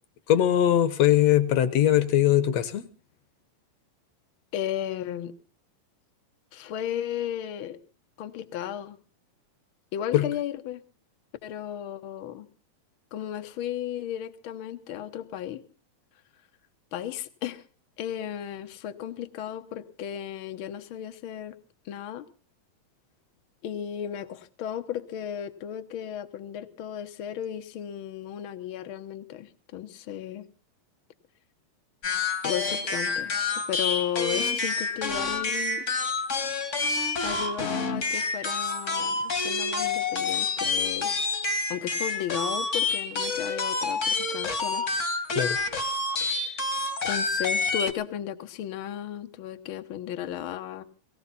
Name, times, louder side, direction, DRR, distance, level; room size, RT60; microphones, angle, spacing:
voice 1, 0.3-2.9 10.1-10.3 45.3-45.6, left 11 dB, 70° left, 14 dB, 1.6 m, -21 dB
voice 2, 4.5-5.4 6.5-7.8 8.2-9.0 9.9-10.8 11.4-12.5 13.1-15.6 16.9-17.6 18.0-21.6 21.8-22.2 23.6-30.4 32.4-35.8 37.2-41.1 41.7-44.8 46.2-46.5 47.0-50.8, left 10 dB, 85° left, 8 dB, 1.1 m, -34 dB
sound 1, 32.0-47.9, left 3 dB, 45° left, 0.9 m, -28 dB
18.0 x 17.5 x 4.1 m, 0.36 s
omnidirectional pair, 3.9 m